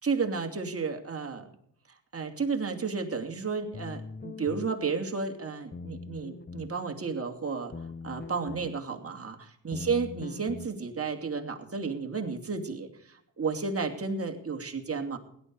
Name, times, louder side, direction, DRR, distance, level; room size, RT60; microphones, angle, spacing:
voice 1, 0.0-1.5 1.9-7.7 8.0-15.2, right 5 dB, 35° right, 4 dB, 2.8 m, -32 dB
sound 1, 3.7-4.7 5.7-6.7 7.7-8.7 9.7-10.7, left 4 dB, 25° left, 0.8 m, -41 dB
17.5 x 11.5 x 4.7 m, 0.69 s
cardioid pair, 75°, 41 cm